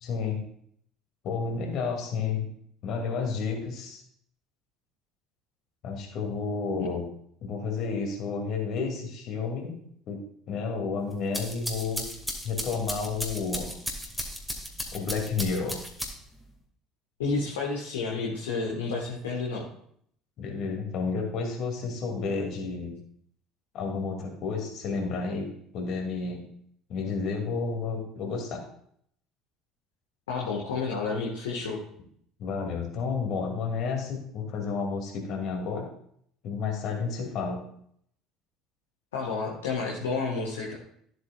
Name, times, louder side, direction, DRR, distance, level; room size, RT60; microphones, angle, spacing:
voice 1, 0.0-0.4 1.2-2.5 2.8-4.0 5.8-7.0 7.4-9.7 10.1-10.2 10.5-12.1 12.4-13.7 14.9-15.8 20.4-22.9 23.7-25.5 25.7-26.4 26.9-28.6 32.4-35.9 36.4-37.6, left 5 dB, 50° left, 1 dB, 2.5 m, -31 dB
sound 1, 11.1-16.4, equal, ahead, 2.0 m, -35 dB
voice 2, 17.2-19.7 30.3-31.8 39.1-40.8, left 4 dB, 70° left, -3 dB, 1.5 m, -30 dB
13.5 x 7.8 x 2.4 m, 0.65 s
figure-of-eight pair, 60°, 0 cm